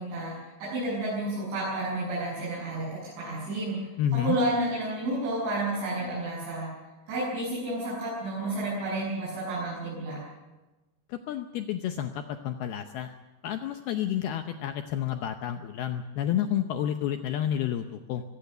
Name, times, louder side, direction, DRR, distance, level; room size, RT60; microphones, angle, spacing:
voice 1, 0.0-3.8 4.1-6.7 7.1-10.2, right 1 dB, 80° right, -9 dB, 9.8 m, -31 dB
voice 2, 4.0-4.4 11.1-13.1 13.4-18.2, left 10 dB, 75° left, 7 dB, 2.4 m, -30 dB
23.0 x 17.0 x 6.8 m, 1.1 s
omnidirectional pair, 5.3 m